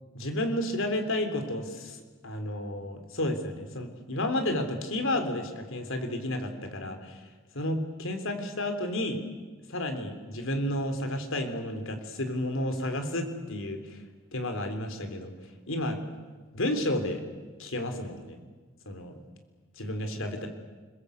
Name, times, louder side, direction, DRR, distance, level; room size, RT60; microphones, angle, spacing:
voice 1, 0.1-2.0 2.2-7.2 7.5-9.2 9.7-14.0 14.3-15.3 15.7-16.0 16.5-17.2 17.6-18.4 18.9-19.2 19.8-20.5, left 1 dB, 65° left, 7 dB, 3.7 m, -31 dB
29.5 x 21.5 x 8.2 m, 1.4 s
head